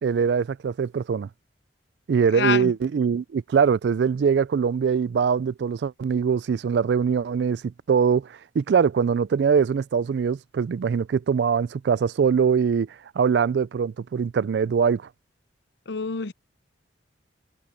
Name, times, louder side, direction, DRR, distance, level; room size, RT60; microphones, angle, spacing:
voice 1, 0.0-1.3 2.1-8.3 8.6-12.9 13.2-15.0, right 6 dB, 60° right, 0.3 m, -22 dB
voice 2, 2.3-2.7 15.9-16.3, left 5 dB, 65° left, 0.7 m, -26 dB
head